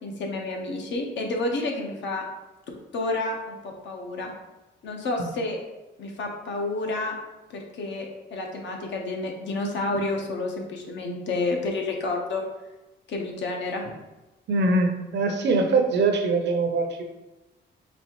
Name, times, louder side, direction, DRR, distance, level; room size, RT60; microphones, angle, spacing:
voice 1, 0.0-2.3 2.9-4.3 4.8-5.6 6.0-7.2 7.5-12.4 13.1-13.9, left 2 dB, 65° left, 1 dB, 0.9 m, -30 dB
voice 2, 14.5-17.0, right 3 dB, 60° right, 4 dB, 0.7 m, -23 dB
4.2 x 3.3 x 3.0 m, 1.1 s
cardioid pair, 90°, 20 cm